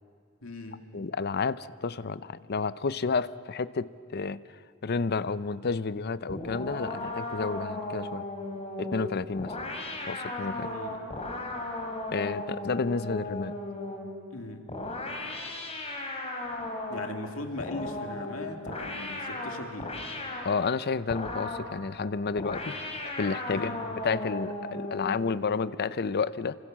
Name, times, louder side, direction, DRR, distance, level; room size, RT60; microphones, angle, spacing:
voice 1, 0.4-0.8 10.5-11.0 14.3-14.8 16.9-20.0 23.5-23.8, left 2 dB, 80° left, 5 dB, 2.3 m, -39 dB
voice 2, 0.9-4.4 4.8-8.2 8.8-9.5 10.1-10.7 12.1-13.5 20.4-22.7 23.2-23.7 24.0-26.6, left 4 dB, 50° left, 17 dB, 0.6 m, -30 dB
sound 1, 6.3-14.1 14.7-17.2 17.6-20.5 21.1-21.7 22.4-25.2, left 2 dB, 30° left, 3.7 m, -36 dB
27.5 x 25.5 x 7.5 m, 2.4 s
head